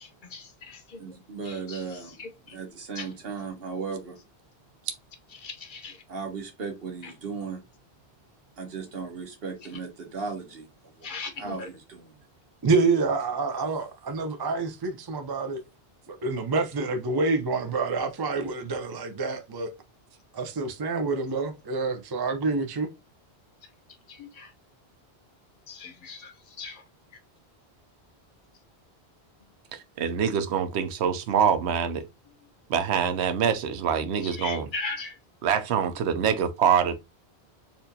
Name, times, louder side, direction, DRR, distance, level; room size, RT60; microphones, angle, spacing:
voice 1, 0.2-1.2 1.4-2.6 3.0-3.1 5.4-6.0 7.0-7.1 11.0-11.7 24.1-24.5 25.7-26.8 34.2-35.2, left 4 dB, 55° left, 0.7 m, -39 dB
voice 2, 1.0-2.2 2.5-4.2 6.1-7.6 8.6-10.7 11.0-11.1 11.4-12.1, right 5 dB, 65° right, 1.2 m, -36 dB
voice 3, 12.6-15.6 16.1-19.7 20.3-22.9, right 3 dB, 35° right, 0.3 m, -27 dB
voice 4, 29.7-32.0 32.7-34.7 35.4-36.9, right 7 dB, 85° right, 0.9 m, -25 dB
4.3 x 2.5 x 2.6 m
omnidirectional pair, 1.1 m